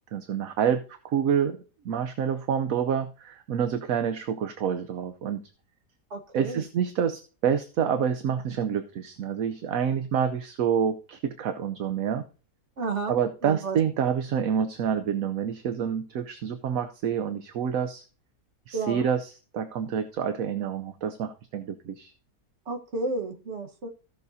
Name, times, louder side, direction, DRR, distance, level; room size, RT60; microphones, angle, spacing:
voice 1, 0.1-1.6 1.8-5.4 6.3-12.2 13.1-18.0 18.7-22.1, right 8 dB, 70° right, 8 dB, 1.1 m, -28 dB
voice 2, 6.1-6.7 12.8-13.1 13.4-13.8 18.7-19.1 22.7-23.9, right 3 dB, 50° right, 4 dB, 1.5 m, -31 dB
15.5 x 6.5 x 2.7 m, 0.36 s
omnidirectional pair, 1.6 m